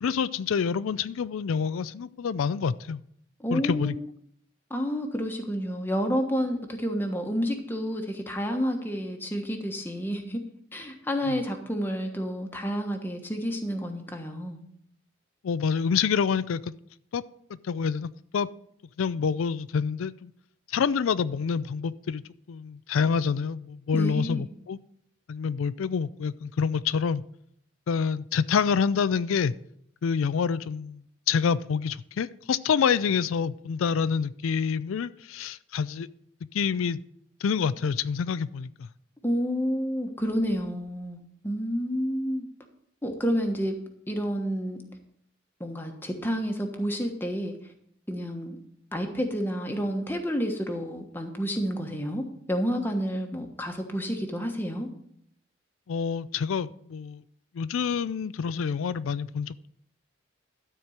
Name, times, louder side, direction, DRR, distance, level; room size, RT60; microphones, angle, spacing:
voice 1, 0.0-3.0 3.5-4.0 11.3-11.4 15.4-16.7 17.1-17.2 17.5-18.5 19.0-20.3 20.7-22.2 22.5-24.8 25.3-27.2 27.9-29.5 30.0-36.1 36.5-37.0 37.4-38.9 55.9-57.2 57.5-59.7, left 6 dB, 90° left, 16 dB, 0.4 m, -27 dB
voice 2, 3.4-3.9 4.7-10.4 10.7-14.6 23.9-24.4 39.2-42.4 43.0-43.7 44.1-44.8 45.6-47.5 48.1-48.6 48.9-54.9, equal, 10° left, 4 dB, 1.2 m, -29 dB
12.5 x 4.5 x 7.9 m, 0.70 s
head